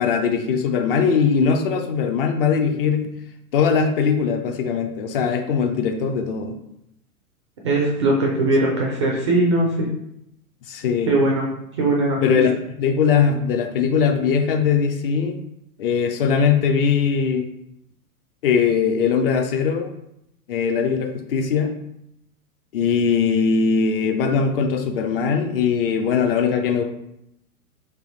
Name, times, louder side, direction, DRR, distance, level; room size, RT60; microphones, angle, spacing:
voice 1, 0.0-3.1 3.5-6.6 10.7-11.2 12.2-15.4 15.8-17.5 18.4-19.9 20.5-21.7 22.7-26.8, left 6 dB, 40° left, 5 dB, 0.5 m, -20 dB
voice 2, 7.6-9.9 11.1-11.5 11.8-12.4, right 2 dB, 25° right, -2 dB, 0.3 m, -20 dB
3.4 x 2.6 x 3.9 m, 0.80 s
figure-of-eight pair, 105°, 45 cm